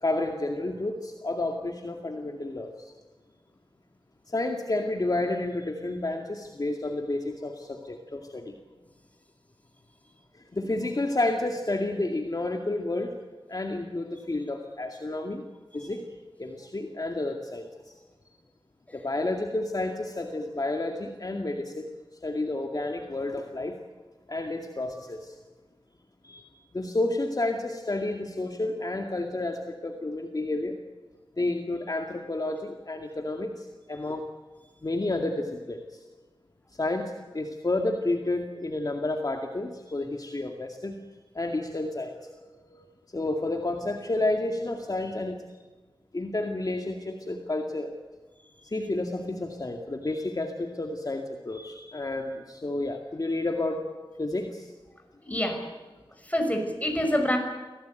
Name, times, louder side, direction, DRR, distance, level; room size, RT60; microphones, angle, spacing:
voice 1, 0.0-2.9 4.3-8.5 10.5-13.1 13.5-15.4 15.7-16.0 16.4-17.9 18.9-21.9 22.2-23.8 24.3-25.4 26.2-26.5 26.7-30.8 31.4-34.2 34.8-36.0 36.7-41.0 41.3-42.9 43.1-45.4 46.1-47.9 48.6-53.8 54.2-54.7, left 2 dB, 45° left, 3 dB, 2.2 m, -30 dB
voice 2, 55.2-55.6 56.2-57.4, equal, 15° left, 4 dB, 5.7 m, -27 dB
25.5 x 17.5 x 9.2 m, 1.3 s
wide cardioid pair, 75°, 9 cm